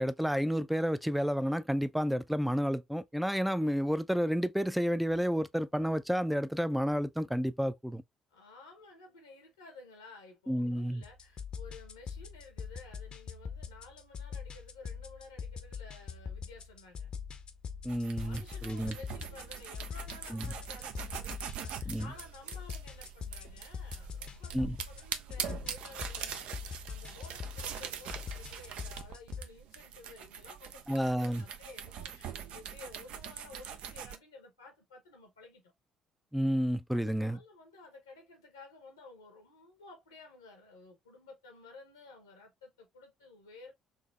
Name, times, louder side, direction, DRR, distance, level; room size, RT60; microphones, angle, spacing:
voice 1, 0.0-8.0 10.5-11.0 17.8-19.0 20.3-20.4 21.9-22.1 24.5-24.8 30.9-31.4 36.3-37.4, equal, ahead, 0.4 m, -30 dB
voice 2, 8.3-17.1 18.2-35.7 36.9-43.7, left 3 dB, 90° left, 0.8 m, -53 dB
sound 1, 11.0-29.4, left 6 dB, 50° left, 0.6 m, -43 dB
sound 2, 17.9-34.2, right 8 dB, 65° right, 0.4 m, -43 dB
3.8 x 2.8 x 2.4 m
hypercardioid pair, 50°, 2 cm